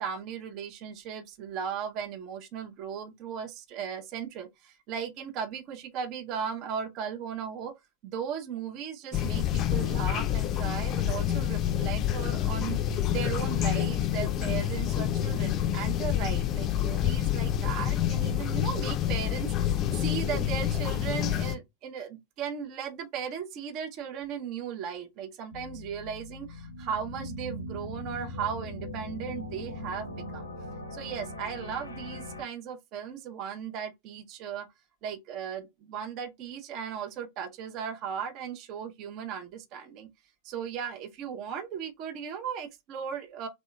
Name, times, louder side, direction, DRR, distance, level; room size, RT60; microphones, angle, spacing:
voice 1, 0.0-7.7 8.0-30.5 30.9-34.7 35.0-40.1 40.4-43.5, right 7 dB, 40° right, 0.6 m, -37 dB
sound 1, 9.1-21.5, left 11 dB, 30° left, 0.4 m, -28 dB
sound 2, 25.5-32.4, left 1 dB, 80° left, 0.7 m, -40 dB
3.2 x 2.7 x 2.4 m
figure-of-eight pair, 90°, 0 cm